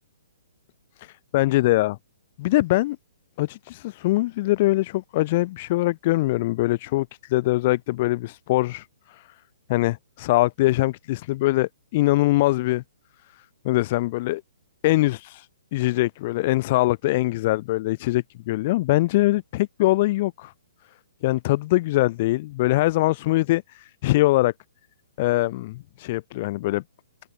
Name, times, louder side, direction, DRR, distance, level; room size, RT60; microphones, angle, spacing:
voice 1, 1.0-2.0 2.4-3.0 3.4-9.2 9.7-12.8 13.6-14.4 14.8-20.5 21.2-24.5 25.2-26.8, left 18 dB, 40° left, 0.8 m, -23 dB
figure-of-eight pair, 120°, 0 cm